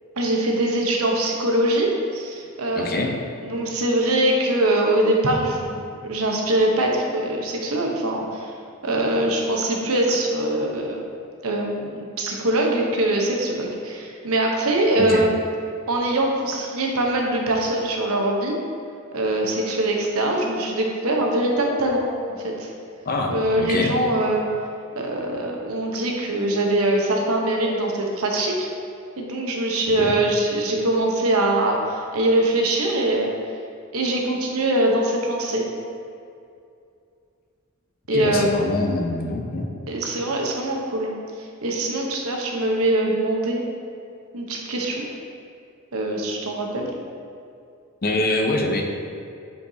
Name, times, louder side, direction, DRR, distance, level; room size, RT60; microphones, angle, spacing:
voice 1, 0.2-3.1 3.4-8.5 8.8-11.0 11.4-15.3 15.9-18.6 19.1-22.0 22.4-22.7 23.3-24.4 24.9-28.7 29.2-33.3 33.9-35.7 38.1-38.7 39.9-41.1 41.6-43.6 44.3-45.1 45.9-46.9, right 1 dB, 80° right, 0 dB, 0.9 m, -23 dB
voice 2, 2.8-3.1 15.0-15.2 23.1-23.9 30.0-30.1 38.1-39.7 48.0-48.8, left 2 dB, 45° left, 2 dB, 0.6 m, -24 dB
8.0 x 4.6 x 2.8 m, 2.5 s
head